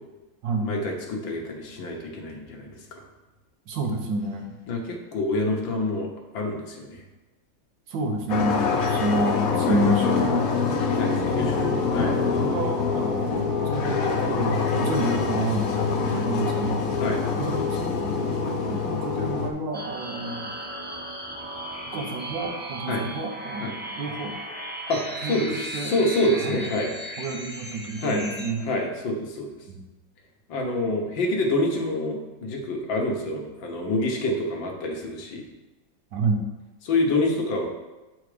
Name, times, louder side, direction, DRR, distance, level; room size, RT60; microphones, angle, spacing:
voice 1, 0.6-3.0 4.7-6.1 6.3-7.0 9.7-9.8 11.0-12.1 13.3-13.4 17.0-17.2 22.9-23.0 23.6-23.7 24.9-25.5 25.8-26.9 28.0-28.2 28.6-29.5 30.5-35.4 36.8-37.7, left 2 dB, 80° left, 1 dB, 1.9 m, -27 dB
voice 2, 3.7-4.6 7.9-17.0 17.4-20.5 21.9-24.4 25.2-25.9 26.4-26.7 27.2-28.7 29.7-29.8 36.1-36.4, right 2 dB, 70° right, 2 dB, 1.6 m, -29 dB
sound 1, 8.3-19.5, left 5 dB, 55° left, 1.0 m, -25 dB
sound 2, 19.7-28.5, right 1 dB, 15° right, 0.3 m, -36 dB
8.0 x 4.9 x 4.9 m, 1.1 s
omnidirectional pair, 2.1 m